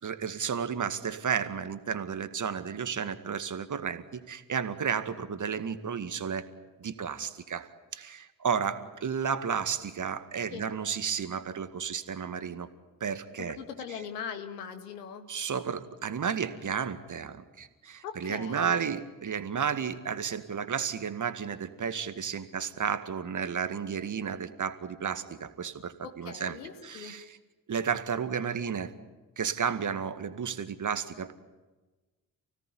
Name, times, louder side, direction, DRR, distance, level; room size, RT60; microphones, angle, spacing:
voice 1, 0.0-6.4 6.8-12.7 13.0-13.6 15.3-26.6 26.8-27.4 27.7-28.9 29.4-31.3, right 7 dB, 40° right, 11 dB, 2.1 m, -32 dB
voice 2, 13.4-15.3 18.0-18.8 26.0-27.2, left 7 dB, 75° left, 8 dB, 2.0 m, -40 dB
29.5 x 17.5 x 9.8 m, 1.2 s
figure-of-eight pair, 40°, 47 cm